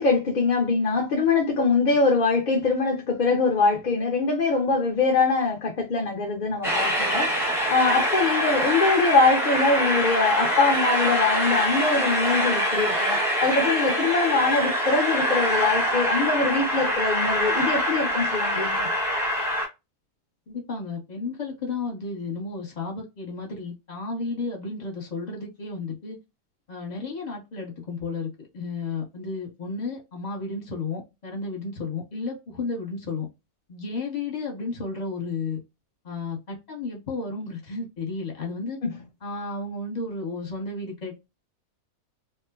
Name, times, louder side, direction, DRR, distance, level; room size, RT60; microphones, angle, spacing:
voice 1, 0.0-7.3 7.7-18.9 38.8-38.9, left 4 dB, 55° left, 0.5 m, -23 dB
Train, 6.6-19.7, equal, ahead, 0.6 m, -24 dB
voice 2, 20.5-26.2 26.7-33.3 33.7-35.6 36.0-38.8 39.2-41.3, left 3 dB, 30° left, 0.9 m, -33 dB
2.9 x 2.1 x 2.3 m
omnidirectional pair, 1.6 m